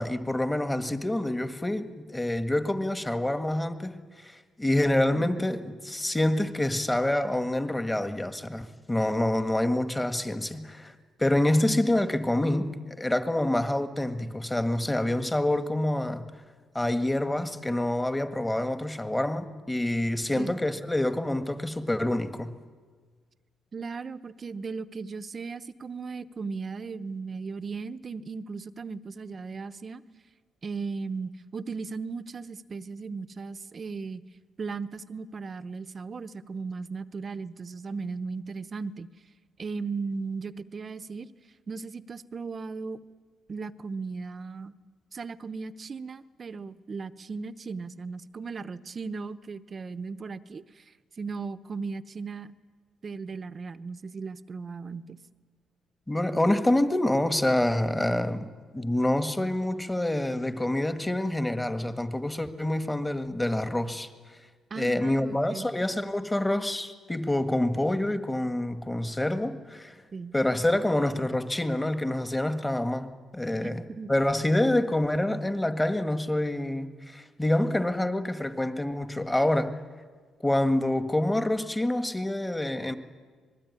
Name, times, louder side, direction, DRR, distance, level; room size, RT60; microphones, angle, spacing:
voice 1, 0.0-10.9 11.2-16.3 16.7-22.6 56.1-64.1 64.8-70.0 70.3-79.7 80.4-83.0, left 1 dB, 10° left, 1.7 m, -27 dB
voice 2, 23.7-30.0 30.6-34.2 34.6-39.1 39.6-41.3 41.7-43.0 43.5-44.7 45.1-52.5 53.0-55.2 64.7-65.7 70.1-70.3 73.6-74.1, right 4 dB, 40° right, 0.9 m, -37 dB
26.0 x 20.5 x 9.8 m
cardioid pair, 90°, 0 cm